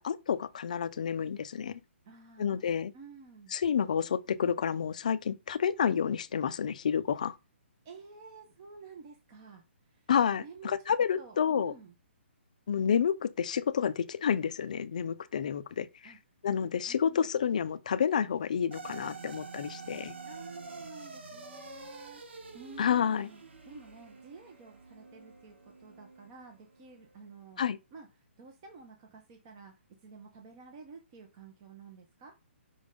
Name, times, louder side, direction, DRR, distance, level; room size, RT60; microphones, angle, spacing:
voice 1, 0.0-1.8 2.4-2.9 3.5-7.4 10.1-11.7 12.7-16.1 16.4-20.1 22.8-23.3 27.6-27.8, left 7 dB, 35° left, 0.5 m, -29 dB
voice 2, 2.0-3.5 7.8-12.0 16.0-16.2 16.9-17.3 20.2-28.1 28.4-29.7 30.0-32.3, right 4 dB, 20° right, 0.7 m, -51 dB
sound 1, 18.7-27.2, right 4 dB, 60° right, 1.4 m, -47 dB
5.4 x 3.5 x 5.2 m
hypercardioid pair, 180°, 7 cm